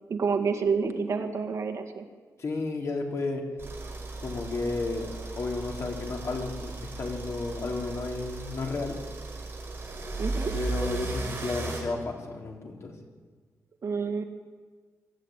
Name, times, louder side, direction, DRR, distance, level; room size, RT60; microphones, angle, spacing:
voice 1, 0.1-2.0 10.2-10.5 13.8-14.2, right 5 dB, 55° right, 5 dB, 2.0 m, -28 dB
voice 2, 2.4-3.4 4.2-9.0 10.5-13.0, left 3 dB, 50° left, 1 dB, 3.4 m, -32 dB
sound 1, 3.6-11.8, right 3 dB, 35° right, 6.0 m, -36 dB
24.0 x 13.5 x 9.2 m, 1.5 s
wide cardioid pair, 150°, 6 cm